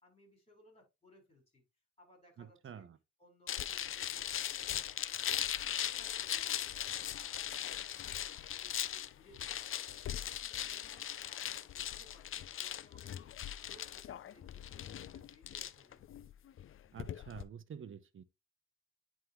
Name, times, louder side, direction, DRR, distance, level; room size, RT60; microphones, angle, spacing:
voice 1, 0.0-1.6 2.0-2.9 3.2-9.7 10.0-13.1 13.6-16.0, left 1 dB, 20° left, 4.8 m, -64 dB
voice 2, 2.4-3.0 16.9-18.2, right 7 dB, 40° right, 0.8 m, -48 dB
sound 1, 3.5-17.4, left 10 dB, 45° left, 0.5 m, -39 dB
9.6 x 3.7 x 3.1 m
cardioid pair, 90°, 30 cm